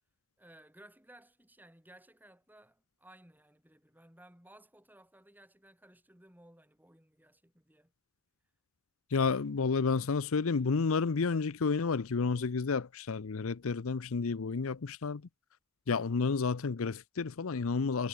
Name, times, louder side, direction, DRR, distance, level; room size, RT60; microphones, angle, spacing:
voice 1, 0.4-7.9, right 1 dB, 10° right, 7.3 m, -59 dB
voice 2, 9.1-15.2 15.9-18.1, left 4 dB, 70° left, 0.6 m, -31 dB
head